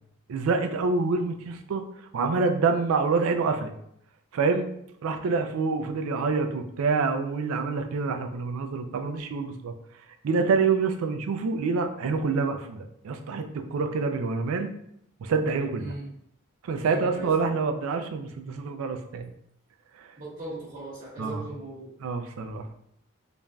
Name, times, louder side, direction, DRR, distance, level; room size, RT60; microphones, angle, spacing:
voice 1, 0.3-1.8 2.1-3.7 4.3-4.7 5.0-9.7 10.2-14.7 15.2-15.9 16.6-19.3 20.0-20.1 21.2-21.4 22.0-22.6, right 4 dB, 75° right, 6 dB, 0.3 m, -27 dB
voice 2, 15.8-16.1 16.8-17.3 20.2-21.9, right 2 dB, 35° right, -10 dB, 0.8 m, -38 dB
3.1 x 2.5 x 2.2 m, 0.73 s
head